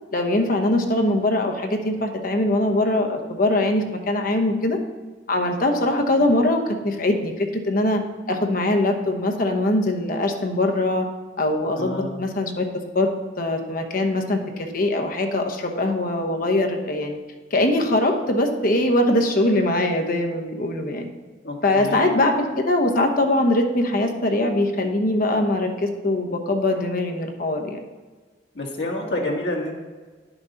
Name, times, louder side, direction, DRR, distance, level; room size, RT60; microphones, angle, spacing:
voice 1, 0.1-4.8 5.3-8.0 8.3-11.1 11.4-12.6 12.9-13.1 13.4-14.4 14.7-17.2 17.5-21.1 21.6-27.8, left 1 dB, 50° left, 4 dB, 1.0 m, -22 dB
voice 2, 11.8-12.2 21.4-22.2 28.5-29.7, left 1 dB, 70° left, -1 dB, 1.6 m, -28 dB
10.5 x 6.1 x 4.0 m, 1.4 s
head